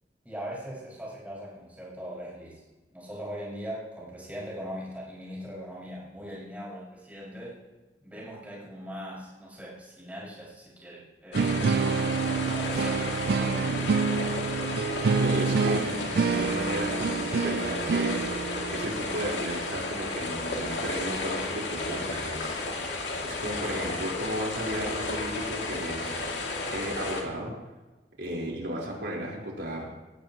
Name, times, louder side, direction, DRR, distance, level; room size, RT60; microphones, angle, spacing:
voice 1, 0.2-2.6 2.9-7.6 8.0-11.6 12.2-14.1, equal, 10° right, -6 dB, 5.7 m, -40 dB
sound 1, 11.3-27.2, left 2 dB, 85° left, 2.4 m, -33 dB
sound 2, 11.3-20.3, right 5 dB, 60° right, 0.4 m, -28 dB
voice 2, 15.2-18.2 18.7-22.6 22.8-27.5 28.2-29.9, equal, 80° right, -3 dB, 4.3 m, -34 dB
18.5 x 15.5 x 3.0 m, 1.1 s
head